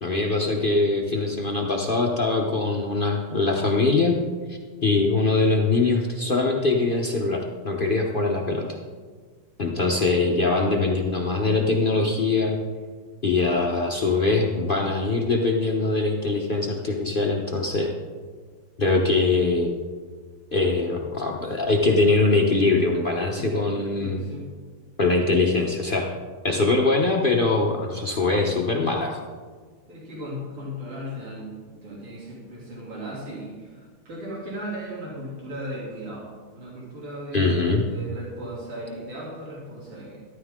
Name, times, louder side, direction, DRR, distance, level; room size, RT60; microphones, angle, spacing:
voice 1, 0.0-4.2 4.5-8.8 9.6-12.6 13.2-17.9 18.8-19.7 20.5-24.2 25.0-26.1 26.4-29.2 37.3-37.9, left 3 dB, 70° left, 0 dB, 0.5 m, -22 dB
voice 2, 23.4-24.5 29.9-40.3, equal, 80° right, -6 dB, 3.8 m, -37 dB
13.0 x 12.5 x 3.7 m, 1.5 s
omnidirectional pair, 2.4 m